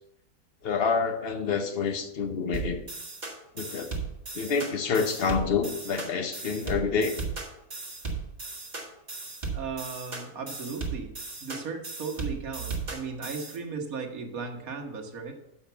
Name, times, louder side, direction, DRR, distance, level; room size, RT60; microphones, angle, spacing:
voice 1, 0.6-2.8 3.6-3.9 4.3-7.2, left 5 dB, 45° left, 7 dB, 0.9 m, -27 dB
sound 1, 2.5-13.6, right 4 dB, 25° right, 1.8 m, -36 dB
voice 2, 9.5-11.1 11.4-15.3, right 5 dB, 60° right, 2 dB, 1.7 m, -36 dB
7.2 x 5.8 x 6.9 m, 0.84 s
omnidirectional pair, 1.8 m